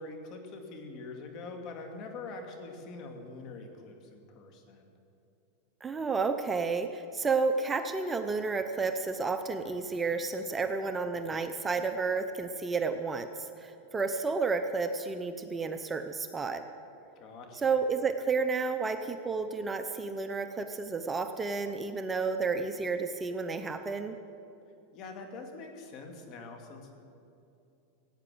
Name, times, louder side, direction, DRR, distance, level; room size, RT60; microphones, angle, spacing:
voice 1, 0.0-4.9 17.2-17.8 24.9-27.0, left 3 dB, 45° left, 3 dB, 2.4 m, -44 dB
voice 2, 5.8-16.6 17.5-24.1, right 4 dB, 15° right, 7 dB, 0.7 m, -31 dB
17.5 x 8.9 x 7.8 m, 2.7 s
supercardioid pair, 125°, 0 cm